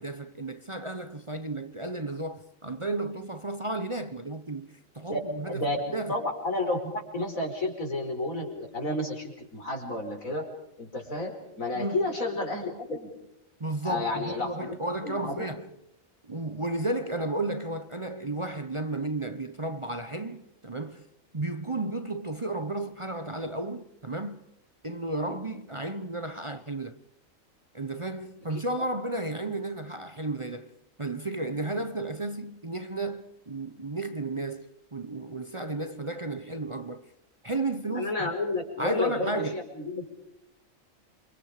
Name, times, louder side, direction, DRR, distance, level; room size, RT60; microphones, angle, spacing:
voice 1, 0.0-6.2 11.7-12.0 13.6-15.7 16.2-21.0 21.3-24.4 24.8-27.0 27.7-37.1 37.4-38.3 38.8-39.6, right 2 dB, 25° right, 0.9 m, -33 dB
voice 2, 5.5-5.8 6.1-10.5 10.8-13.1 13.8-14.8 15.0-15.4 25.3-25.4 37.9-40.1, left 2 dB, 80° left, 5.7 m, -31 dB
29.0 x 25.0 x 5.1 m
omnidirectional pair, 1.4 m